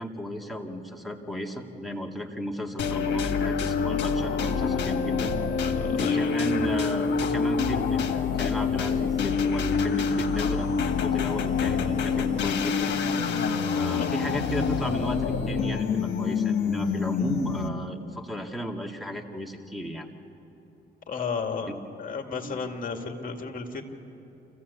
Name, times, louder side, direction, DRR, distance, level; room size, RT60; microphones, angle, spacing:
voice 1, 0.0-5.3 6.0-10.7 11.0-12.9 13.7-20.1 21.7-21.8 22.4-22.6, equal, ahead, 1 dB, 2.0 m, -34 dB
sound 1, 2.8-17.9, left 5 dB, 65° left, 1.7 m, -26 dB
voice 2, 5.6-6.3 21.1-21.7 22.0-23.8, left 5 dB, 45° left, 4 dB, 2.3 m, -33 dB
27.0 x 15.5 x 8.3 m, 2.9 s
cardioid pair, 90°, 20 cm